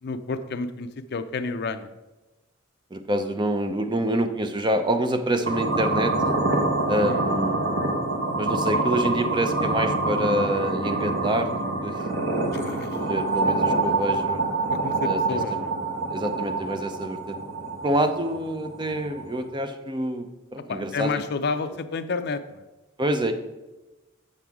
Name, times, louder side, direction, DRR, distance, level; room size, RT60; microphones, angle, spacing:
voice 1, 0.0-1.9 7.0-7.2 12.5-13.0 14.7-15.7 20.7-22.6, left 4 dB, 55° left, 9 dB, 0.5 m, -30 dB
voice 2, 2.9-6.4 6.9-7.7 8.4-12.0 12.7-14.5 15.0-15.2 15.5-15.6 16.1-17.4 17.8-20.3 20.5-21.2 23.0-23.3, right 1 dB, 20° right, 7 dB, 0.6 m, -27 dB
sound 1, 5.4-19.5, right 2 dB, 55° right, 1.1 m, -26 dB
7.6 x 7.0 x 3.5 m, 1.1 s
head